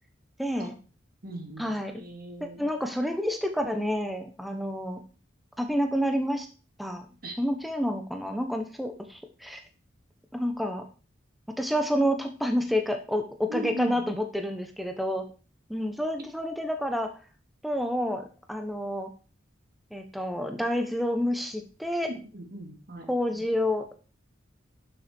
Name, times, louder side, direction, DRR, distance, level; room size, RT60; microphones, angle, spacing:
voice 1, 0.4-0.7 1.6-2.0 2.4-5.0 5.6-6.5 6.8-7.1 7.4-9.6 10.3-10.8 11.6-15.2 15.7-17.1 17.6-19.1 19.9-22.1 23.1-24.1, equal, ahead, 5 dB, 1.1 m, -29 dB
voice 2, 1.2-2.7 7.2-7.4 13.5-14.1 22.0-23.4, right 1 dB, 50° right, 3 dB, 2.4 m, -38 dB
11.5 x 6.9 x 4.5 m, 0.35 s
head